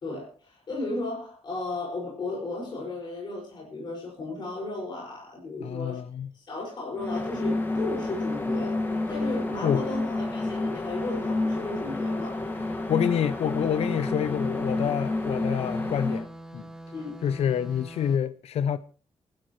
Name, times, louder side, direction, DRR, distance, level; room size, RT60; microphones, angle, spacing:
voice 1, 0.0-6.0 6.3-12.4 16.9-17.2, left 2 dB, 45° left, 5.5 m, -35 dB
voice 2, 5.6-6.3 9.6-9.8 12.9-16.3 16.5-16.7 17.2-18.8, left 9 dB, 75° left, 0.6 m, -27 dB
sound 1, 7.0-16.3, left 2 dB, 20° left, 1.7 m, -29 dB
sound 2, 7.4-18.2, right 1 dB, 5° right, 1.6 m, -46 dB
28.0 x 12.0 x 3.1 m
wide cardioid pair, 150°, 11 cm